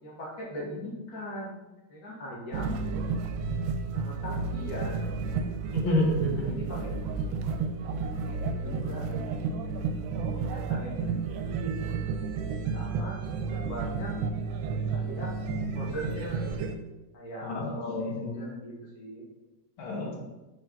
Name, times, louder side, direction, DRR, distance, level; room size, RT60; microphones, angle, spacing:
voice 1, 0.0-1.5 1.9-2.7 3.9-5.1 6.4-7.0 7.6-8.0 8.5-9.4 10.4-11.8 12.7-14.2 14.9-15.4 15.7-16.5 17.1-19.2, equal, 50° left, -4 dB, 2.1 m, -40 dB
sound 1, 2.5-16.8, right 4 dB, 85° right, 1.4 m, -32 dB
voice 2, 5.7-6.5 17.4-18.4 19.8-20.2, left 1 dB, 85° left, -1 dB, 2.1 m, -29 dB
5.7 x 5.1 x 3.9 m, 1.1 s
omnidirectional pair, 2.1 m